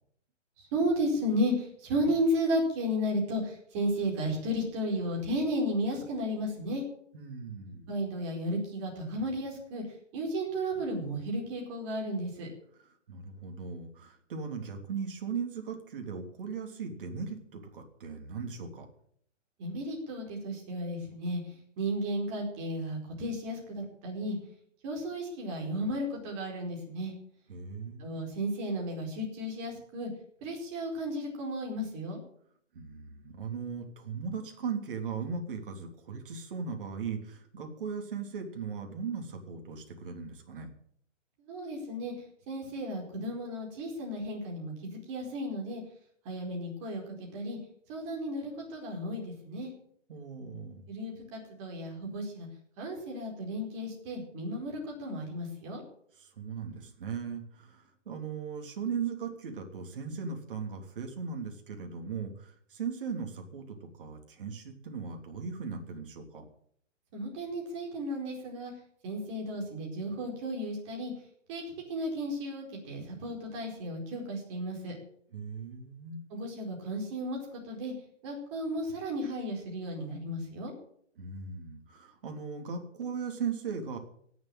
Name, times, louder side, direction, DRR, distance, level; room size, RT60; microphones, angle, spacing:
voice 1, 0.6-6.8 7.9-9.8 10.1-12.5 19.6-21.4 21.8-24.4 24.8-27.1 28.0-30.1 30.4-32.2 41.5-42.1 42.5-45.8 46.2-47.6 47.9-49.7 50.9-52.5 52.8-55.8 67.1-68.7 69.0-71.1 71.5-71.6 71.9-75.0 76.3-77.4 77.7-77.9 78.2-80.7, equal, 25° right, 0 dB, 4.6 m, -33 dB
voice 2, 7.1-7.9 13.1-18.9 27.5-28.3 32.7-40.7 50.1-50.8 56.2-66.4 75.3-76.2 81.2-84.0, right 6 dB, 45° right, 3 dB, 3.3 m, -38 dB
17.5 x 7.4 x 9.2 m, 0.66 s
hypercardioid pair, 170°, 37 cm